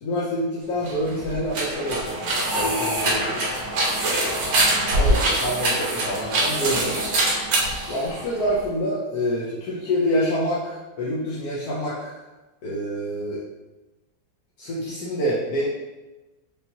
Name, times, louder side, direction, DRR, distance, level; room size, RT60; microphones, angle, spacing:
voice 1, 0.0-3.4 4.7-7.0 7.9-12.2 12.6-13.4 14.6-15.6, equal, 65° left, -7 dB, 1.1 m, -27 dB
sound 1, 0.8-8.6, right 1 dB, 85° right, 1.6 m, -24 dB
5.3 x 2.8 x 2.8 m, 1.1 s
omnidirectional pair, 2.1 m